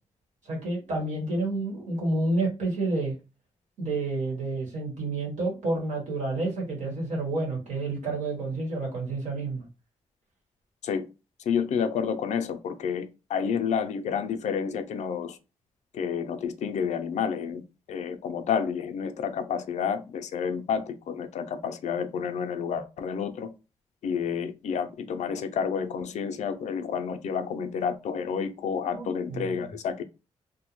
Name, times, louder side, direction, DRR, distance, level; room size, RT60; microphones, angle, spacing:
voice 1, 0.4-3.1 3.8-9.6 28.9-29.7, right 2 dB, 85° right, 1.2 m, -29 dB
voice 2, 11.5-15.4 15.9-17.6 17.9-23.5 24.0-30.0, left 7 dB, 75° left, 0.4 m, -30 dB
2.6 x 2.1 x 2.9 m
cardioid pair, 65°, 12 cm